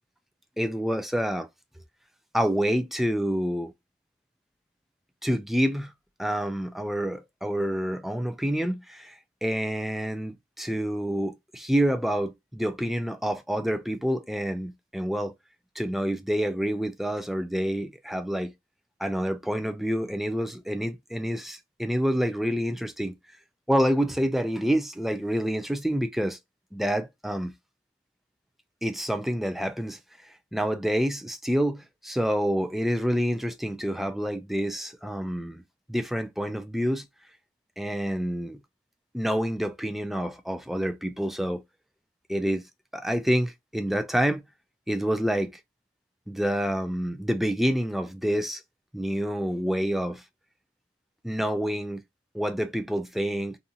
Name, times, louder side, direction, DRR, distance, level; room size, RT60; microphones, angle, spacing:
voice 1, 0.6-1.5 2.3-3.7 5.2-5.9 6.2-9.1 9.4-15.3 15.8-18.5 19.0-23.1 23.7-26.4 26.7-27.5 28.8-30.0 30.5-35.6 35.9-37.0 37.8-38.6 39.1-41.6 42.3-42.6 42.9-44.4 44.9-45.5 46.3-48.6 48.9-50.2 51.2-52.0 52.3-53.6, equal, ahead, 0.3 m, -27 dB
2.7 x 2.4 x 2.5 m
head